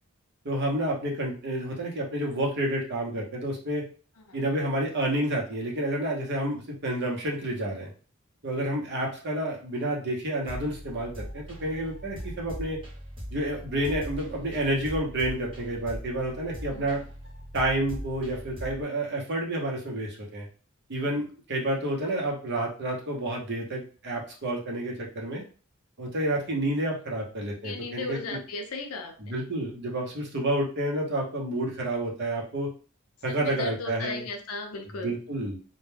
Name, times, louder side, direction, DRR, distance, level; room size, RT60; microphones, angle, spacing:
voice 1, 0.4-3.8 4.3-7.9 8.4-12.8 13.3-17.0 17.5-20.5 20.9-25.4 26.0-28.4 29.2-32.7 33.2-34.2 35.0-35.6, right 1 dB, 50° right, -1 dB, 0.8 m, -29 dB
sound 1, 10.5-18.8, equal, 25° right, 1.0 m, -40 dB
voice 2, 16.7-17.0 27.6-29.4 33.3-35.2, left 3 dB, 80° left, 5 dB, 0.5 m, -37 dB
2.2 x 2.2 x 3.2 m, 0.39 s
head